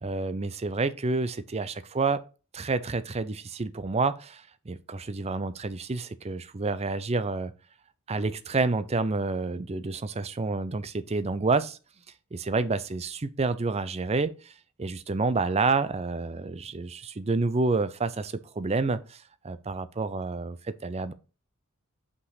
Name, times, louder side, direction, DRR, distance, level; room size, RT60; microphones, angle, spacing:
voice 1, 0.0-2.2 2.5-7.5 8.1-11.8 12.3-14.5 14.8-21.1, right 3 dB, 30° right, 0.5 m, -29 dB
5.6 x 5.4 x 4.0 m
head